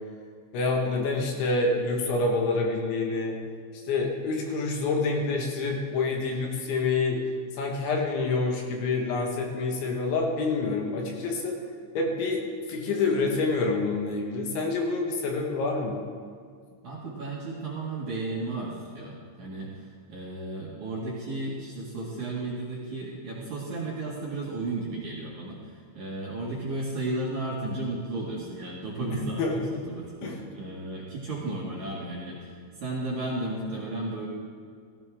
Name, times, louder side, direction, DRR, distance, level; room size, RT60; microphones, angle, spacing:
voice 1, 0.5-3.4 3.9-7.2 7.6-11.6 12.0-16.0 29.4-29.6 30.2-30.4, left 3 dB, 70° left, 0 dB, 3.9 m, -27 dB
voice 2, 16.8-34.3, right 2 dB, 50° right, -5 dB, 2.6 m, -34 dB
16.5 x 15.5 x 3.7 m, 2.1 s
omnidirectional pair, 5.7 m